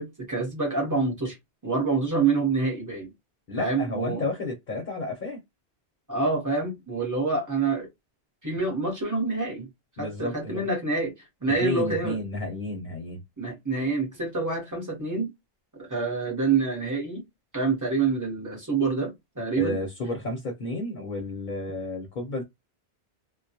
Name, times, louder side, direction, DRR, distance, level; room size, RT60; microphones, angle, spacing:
voice 1, 0.0-1.4 1.6-3.1 3.6-4.2 6.1-7.9 8.4-9.7 10.0-12.2 13.4-15.3 15.8-17.2 17.5-19.8, right 4 dB, 20° right, 0.9 m, -27 dB
voice 2, 3.5-5.4 10.0-10.7 11.6-13.2 19.6-22.4, left 2 dB, 50° left, 0.8 m, -31 dB
2.2 x 2.1 x 2.7 m
omnidirectional pair, 1.1 m